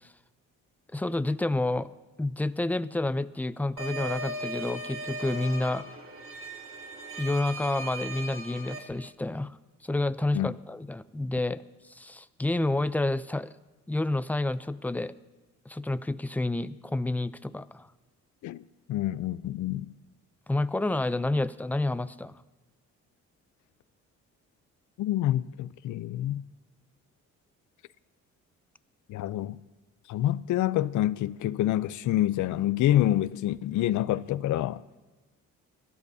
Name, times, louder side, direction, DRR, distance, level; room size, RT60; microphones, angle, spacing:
voice 1, 0.9-1.9 2.2-5.8 7.2-9.5 9.8-11.6 11.9-13.5 13.9-15.1 15.7-17.9 20.5-22.3, left 2 dB, 5° left, 0.4 m, -29 dB
sound 1, 3.8-8.8, right 1 dB, 45° right, 2.2 m, -38 dB
voice 2, 18.9-19.9 25.0-26.4 29.1-29.6 30.1-34.8, left 13 dB, 75° left, 0.6 m, -27 dB
22.0 x 13.5 x 2.7 m
cardioid pair, 90°, 30 cm